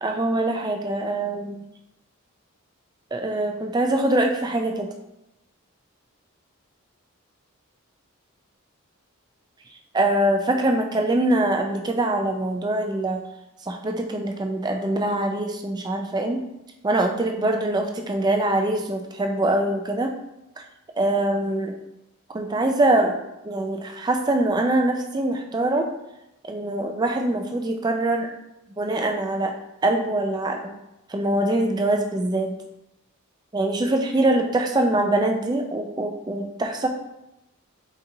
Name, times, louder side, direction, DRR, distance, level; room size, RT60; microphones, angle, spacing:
voice 1, 0.0-1.6 3.1-4.9 9.9-13.2 13.6-16.4 16.8-20.1 21.0-21.8 22.3-23.2 23.4-25.9 26.5-28.3 28.7-29.5 29.8-30.7 31.1-32.5 33.5-36.9, right 1 dB, 20° right, 3 dB, 0.3 m, -23 dB
4.1 x 3.9 x 2.6 m, 0.89 s
head